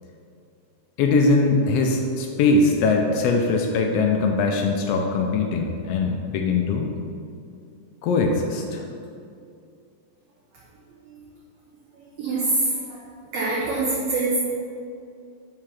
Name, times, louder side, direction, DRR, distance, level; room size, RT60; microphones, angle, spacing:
voice 1, 1.0-6.9 8.0-8.9, left 3 dB, 75° left, 2 dB, 1.5 m, -21 dB
voice 2, 12.2-13.0 13.3-14.4, right 2 dB, 65° right, -6 dB, 2.0 m, -24 dB
5.8 x 4.8 x 5.8 m, 2.4 s
omnidirectional pair, 3.3 m